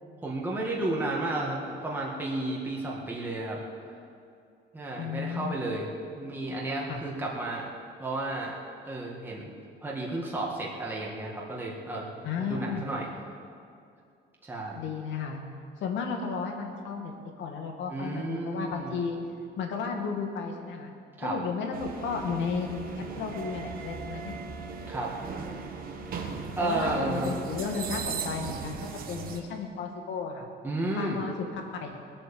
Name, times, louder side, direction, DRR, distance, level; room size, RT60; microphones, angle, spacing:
voice 1, 0.2-3.9 4.7-5.9 6.1-7.7 8.0-8.6 8.9-9.5 9.8-13.1 14.4-14.8 17.9-19.0 21.2-21.4 24.9-25.1 26.6-27.4 30.6-31.2, right 2 dB, 10° right, -3 dB, 1.9 m, -32 dB
voice 2, 5.0-5.5 6.9-7.0 12.2-12.9 14.8-15.4 15.8-19.2 19.6-20.9 21.2-24.3 26.6-28.8 29.1-30.5 31.0-32.0, left 5 dB, 80° left, 3 dB, 2.2 m, -33 dB
sound 1, 21.7-29.4, right 5 dB, 50° right, 1.3 m, -38 dB
20.5 x 8.7 x 7.1 m, 2.4 s
cardioid pair, 175°, 19 cm